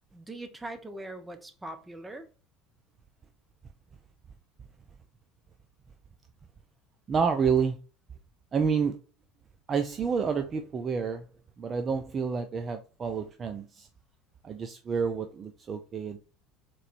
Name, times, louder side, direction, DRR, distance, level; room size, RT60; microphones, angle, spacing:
voice 1, 0.1-2.3, right 1 dB, 15° right, 0.9 m, -41 dB
voice 2, 7.1-7.8 8.5-9.0 9.7-11.2 11.6-13.9 14.4-16.2, right 6 dB, 35° right, 0.5 m, -29 dB
3.9 x 3.1 x 4.2 m
hypercardioid pair, 75°, 0 cm